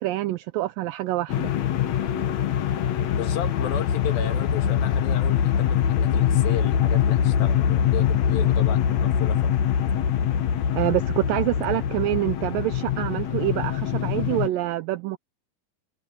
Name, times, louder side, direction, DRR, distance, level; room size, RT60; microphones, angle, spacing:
voice 1, 0.0-1.5 10.7-15.2, right 15 dB, 80° right, 2.4 m, -26 dB
sound 1, 1.3-14.5, left 9 dB, 60° left, 2.3 m, -23 dB
voice 2, 3.1-9.4, left 8 dB, 85° left, 3.7 m, -34 dB
omnidirectional pair, 4.1 m